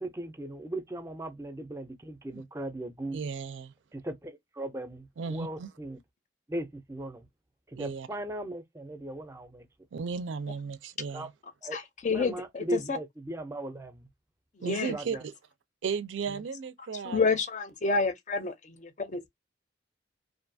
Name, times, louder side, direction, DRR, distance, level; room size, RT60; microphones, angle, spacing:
voice 1, 0.0-3.2 3.9-6.0 6.5-7.3 7.7-9.7 11.1-11.3 11.6-11.8 12.1-14.1 14.9-15.2 16.3-16.4, right 1 dB, 15° right, 0.4 m, -38 dB
voice 2, 3.1-3.7 5.2-5.7 7.8-8.1 9.9-11.3 14.6-15.3 15.8-17.2 18.4-18.5, right 5 dB, 85° right, 0.4 m, -35 dB
voice 3, 11.7-13.0 14.6-15.0 17.0-19.3, left 4 dB, 40° left, 0.5 m, -29 dB
2.6 x 2.3 x 2.6 m
head